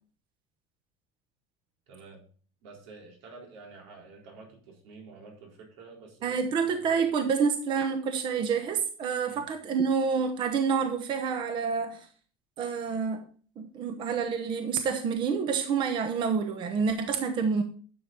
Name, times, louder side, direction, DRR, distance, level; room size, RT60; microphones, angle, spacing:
voice 1, 1.9-2.2 2.6-6.9 9.2-9.4, right 4 dB, 90° right, 0 dB, 4.0 m, -49 dB
voice 2, 6.2-12.1 12.6-13.2 13.6-17.6, right 6 dB, 35° right, 7 dB, 0.9 m, -28 dB
10.5 x 6.7 x 4.0 m, 0.42 s
cardioid pair, 165°, 14 cm